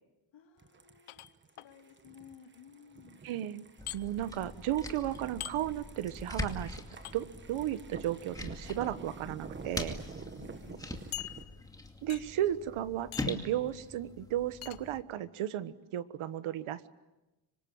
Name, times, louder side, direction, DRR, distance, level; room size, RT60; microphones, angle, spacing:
voice 1, 0.3-1.3 1.6-3.2 10.4-10.9, left 8 dB, 65° left, 3 dB, 3.3 m, -56 dB
sound 1, 0.6-11.4, right 5 dB, 25° right, 1.2 m, -50 dB
sound 2, 1.1-1.7 3.9-4.0 5.4-5.6 7.0-7.2 8.5-8.8 9.5-9.6 10.0-10.1 11.1-11.7 12.1-12.4 13.1-13.5 14.6-14.8, left 15 dB, 85° left, 1.0 m, -43 dB
voice 2, 3.2-3.7 3.9-6.8 7.1-10.0 12.0-16.9, right 12 dB, 85° right, 13 dB, 1.4 m, -34 dB
sound 3, 3.8-15.0, left 2 dB, 5° left, 2.4 m, -43 dB
26.0 x 25.0 x 9.0 m, 1.0 s
cardioid pair, 155°, 48 cm